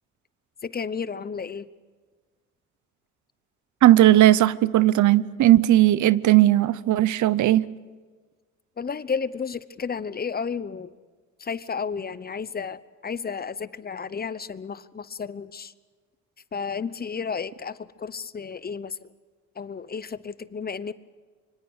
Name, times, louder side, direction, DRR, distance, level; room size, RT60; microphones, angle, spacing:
voice 1, 0.6-1.7 8.8-10.9 11.4-15.7 16.5-19.1 19.6-20.9, left 6 dB, 30° left, 0.9 m, -32 dB
voice 2, 3.8-7.7, right 14 dB, 75° right, 0.7 m, -17 dB
25.5 x 24.5 x 6.4 m
cardioid pair, 90°, 30 cm